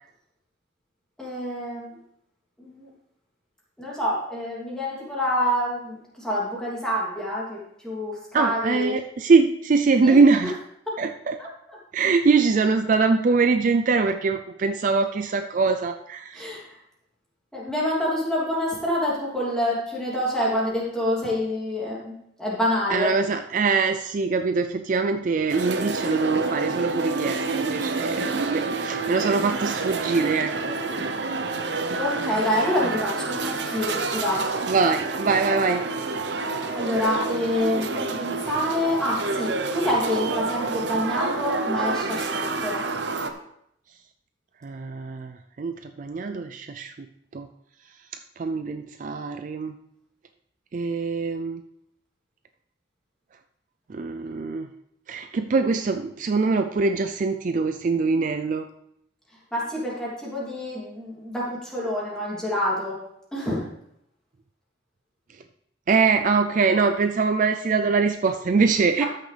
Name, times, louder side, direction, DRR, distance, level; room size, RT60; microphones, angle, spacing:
voice 1, 1.2-1.9 2.6-2.9 3.8-9.0 10.0-10.6 10.9-11.0 11.4-11.8 16.3-16.8 17.5-22.1 22.4-23.1 31.7-34.5 36.7-42.8 59.5-63.0 63.3-63.6 69.0-69.1, left 1 dB, 5° left, -6 dB, 2.8 m, -27 dB
voice 2, 8.3-10.5 11.0-11.4 11.9-16.5 22.9-30.8 34.7-35.8 44.6-46.9 47.3-47.5 48.4-49.7 50.7-51.6 53.9-54.7 55.1-58.7 65.3-65.4 65.9-69.0, right 4 dB, 45° right, 7 dB, 0.4 m, -23 dB
sound 1, 25.5-43.3, right 3 dB, 70° right, 0.8 m, -28 dB
13.5 x 6.5 x 3.4 m, 0.75 s
head